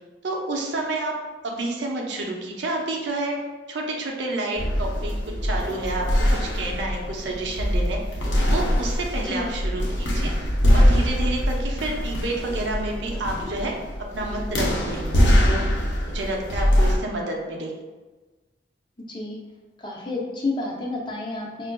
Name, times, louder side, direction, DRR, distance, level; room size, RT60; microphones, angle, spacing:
voice 1, 0.2-1.2 1.4-3.4 3.7-8.0 8.5-10.3 10.7-13.7 14.1-15.7 16.1-17.7, right 2 dB, 85° right, 0 dB, 0.6 m, -29 dB
sound 1, 4.6-17.0, equal, 85° left, 0.7 m, -23 dB
voice 2, 19.8-21.7, left 2 dB, 25° left, -2 dB, 0.5 m, -30 dB
4.5 x 2.5 x 2.2 m, 1.3 s
head